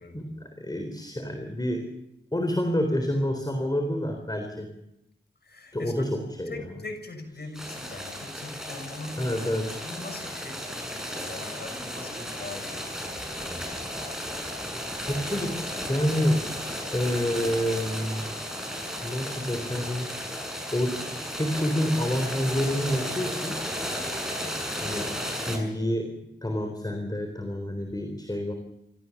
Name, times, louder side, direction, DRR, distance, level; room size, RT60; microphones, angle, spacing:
voice 1, 0.1-1.9 2.3-4.7 5.7-6.6 9.2-9.8 15.0-16.4 16.9-18.3 19.0-20.1 20.7-21.0 21.3-23.6 24.8-25.2 25.5-26.1 26.4-28.5, equal, 20° left, 5 dB, 3.8 m, -28 dB
voice 2, 5.4-6.0 6.5-9.3 9.8-13.7 28.3-28.4, left 2 dB, 55° left, 4 dB, 6.6 m, -41 dB
sound 1, 7.5-25.6, equal, ahead, 7.2 m, -34 dB
27.0 x 14.5 x 7.2 m, 0.85 s
cardioid pair, 40°, 20 cm